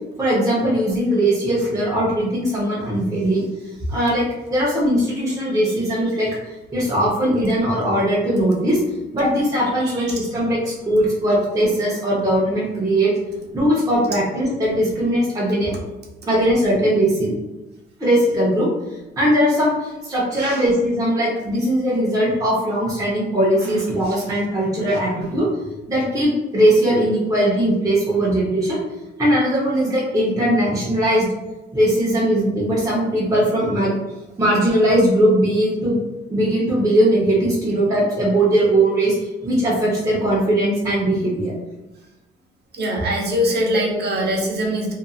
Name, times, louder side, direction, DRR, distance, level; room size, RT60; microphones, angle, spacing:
voice 1, 0.2-3.4 3.9-8.8 9.1-13.1 13.5-15.7 16.3-17.3 18.0-18.7 19.2-25.5 25.9-28.8 29.2-31.3 31.7-33.9 34.4-36.0 36.3-41.5, right 1 dB, 15° right, -7 dB, 0.8 m, -19 dB
voice 2, 9.8-10.1 20.4-20.6 23.6-23.7 24.9-25.0 42.7-44.9, equal, 55° right, -1 dB, 0.8 m, -23 dB
2.7 x 2.6 x 2.4 m, 1.0 s
cardioid pair, 90°, 20 cm